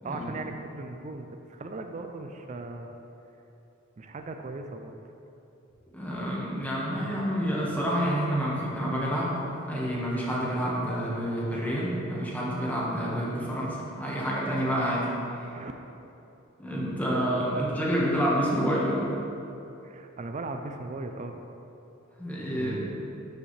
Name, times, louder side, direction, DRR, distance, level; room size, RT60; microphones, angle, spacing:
voice 1, 0.0-3.0 4.0-5.0 15.5-15.7 17.1-17.2 17.5-18.0 19.8-21.4 22.5-23.1, right 3 dB, 35° right, 5 dB, 0.4 m, -38 dB
voice 2, 5.9-15.1 16.6-19.1 22.2-22.8, equal, 10° left, -6 dB, 1.5 m, -28 dB
12.5 x 5.1 x 3.3 m, 2.8 s
head